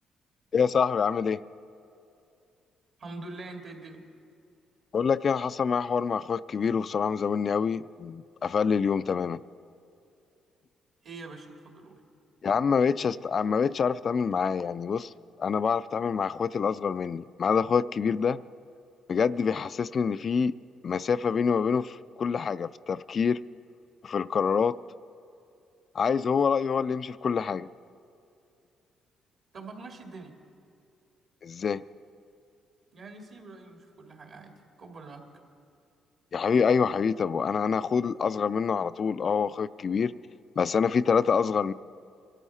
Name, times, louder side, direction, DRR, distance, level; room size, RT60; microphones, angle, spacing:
voice 1, 0.5-1.4 4.9-9.4 12.4-15.1 15.4-18.4 19.1-20.5 20.8-23.4 24.0-24.8 25.9-27.7 31.4-31.8 36.3-40.1 40.6-41.7, left 6 dB, 50° left, 14 dB, 0.3 m, -26 dB
voice 2, 3.0-4.0 11.0-12.0 29.5-30.4 32.9-35.3, right 3 dB, 60° right, 2 dB, 2.3 m, -44 dB
23.5 x 13.0 x 4.3 m, 2.6 s
cardioid pair, 90°, 0 cm